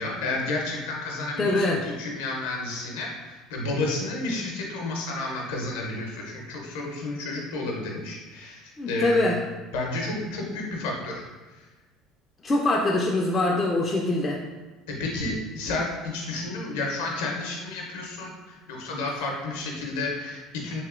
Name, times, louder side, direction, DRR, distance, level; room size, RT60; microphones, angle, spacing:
voice 1, 0.0-9.4 9.7-11.2 11.5-11.6 14.9-20.8, left 2 dB, 80° left, 0 dB, 0.6 m, -31 dB
voice 2, 1.4-1.8 8.8-9.4 12.4-14.4, left 2 dB, 30° left, -2 dB, 0.4 m, -23 dB
2.8 x 2.8 x 2.4 m, 1.2 s
hypercardioid pair, 75°, 0 cm